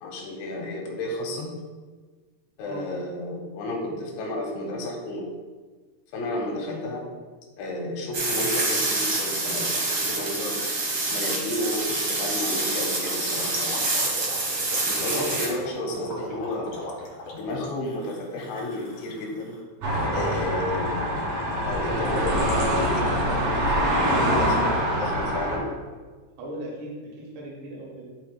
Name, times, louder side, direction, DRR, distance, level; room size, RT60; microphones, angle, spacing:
voice 1, 0.0-1.6 2.6-5.3 6.1-7.0 7.6-10.6 11.1-13.8 14.8-16.8 17.3-19.6 20.1-21.0 21.7-25.7, left 1 dB, 85° left, 0 dB, 3.5 m, -32 dB
sound 1, 8.1-15.5, right 2 dB, 65° right, 1.3 m, -27 dB
Gurgling, 12.7-19.6, left 2 dB, 50° left, 1.6 m, -40 dB
sound 2, 19.8-25.6, equal, 50° right, 2.1 m, -24 dB
voice 2, 26.4-28.1, right 1 dB, 90° right, -4 dB, 3.9 m, -37 dB
12.5 x 4.8 x 2.4 m, 1.4 s
omnidirectional pair, 5.0 m